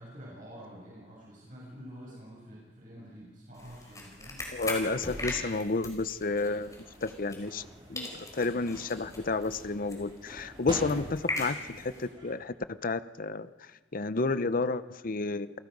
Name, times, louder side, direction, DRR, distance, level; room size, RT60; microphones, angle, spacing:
voice 1, 0.0-4.5, equal, 50° right, -5 dB, 7.1 m, -48 dB
sound 1, 3.5-7.7 7.9-12.0, left 2 dB, 20° left, 4.7 m, -40 dB
voice 2, 4.5-6.7 7.0-12.5 12.8-15.6, left 3 dB, 50° left, 14 dB, 0.8 m, -31 dB
sound 2, 6.4-12.3, right 1 dB, 30° right, 4.6 m, -46 dB
29.0 x 18.5 x 5.4 m, 1.3 s
head